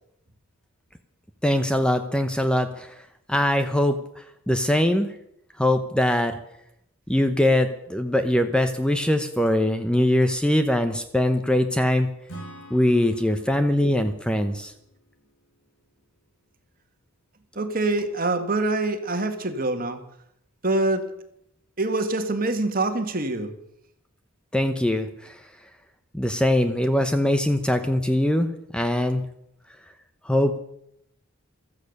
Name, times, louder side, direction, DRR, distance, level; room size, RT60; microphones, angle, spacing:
voice 1, 1.4-5.1 5.6-6.4 7.1-12.1 12.7-14.7 24.5-25.4 26.1-29.2 30.2-30.6, left 1 dB, 5° left, 8 dB, 0.8 m, -22 dB
Acoustic guitar / Strum, 12.3-15.9, right 1 dB, 90° left, 4.5 m, -46 dB
voice 2, 17.6-20.0 20.6-21.1 21.8-23.5, right 2 dB, 40° right, 7 dB, 1.8 m, -25 dB
15.5 x 13.5 x 6.6 m, 0.75 s
head